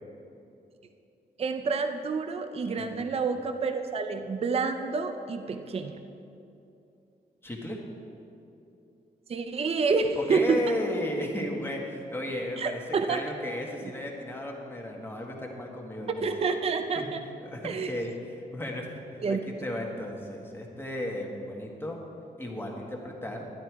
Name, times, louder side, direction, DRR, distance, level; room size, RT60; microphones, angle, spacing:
voice 1, 1.4-6.0 9.3-10.6 12.6-13.2 13.8-13.9 16.2-17.2 17.6-17.9 19.2-19.4, right 4 dB, 40° right, 6 dB, 0.6 m, -28 dB
voice 2, 2.8-3.1 7.4-7.8 10.2-12.8 13.1-16.3 16.9-17.1 17.4-18.9 19.1-22.0 22.4-23.5, left 1 dB, 15° left, 0 dB, 1.6 m, -34 dB
12.0 x 10.5 x 4.7 m, 2.7 s
wide cardioid pair, 140°, 16 cm